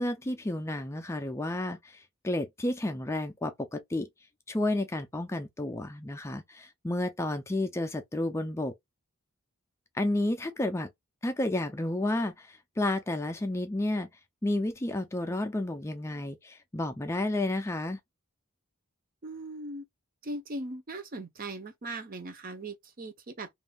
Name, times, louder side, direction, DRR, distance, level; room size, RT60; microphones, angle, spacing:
voice 1, 0.0-4.1 4.5-8.7 9.9-10.9 11.2-14.1 14.4-18.0, left 1 dB, 15° left, 0.4 m, -31 dB
voice 2, 19.2-19.8 20.2-23.5, right 2 dB, 40° right, 0.7 m, -39 dB
3.4 x 2.6 x 2.2 m
head